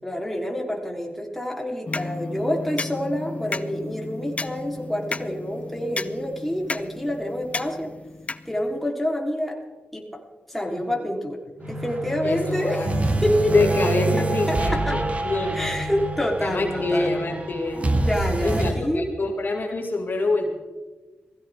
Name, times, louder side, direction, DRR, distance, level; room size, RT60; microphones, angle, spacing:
voice 1, 0.0-7.9 8.5-9.6 9.9-10.1 10.5-11.4 11.7-12.8 13.2-13.6 14.2-15.1 15.5-17.1 18.0-19.1, equal, 5° left, -1 dB, 3.6 m, -27 dB
sound 1, 1.9-8.9, left 3 dB, 30° left, 0.6 m, -33 dB
sound 2, 11.6-18.7, right 2 dB, 35° right, 1.8 m, -26 dB
voice 2, 12.2-13.0 13.5-15.8 16.4-17.9 18.4-20.6, left 2 dB, 55° left, 1 dB, 2.3 m, -26 dB
19.5 x 16.0 x 3.6 m, 1.2 s
cardioid pair, 50°, 4 cm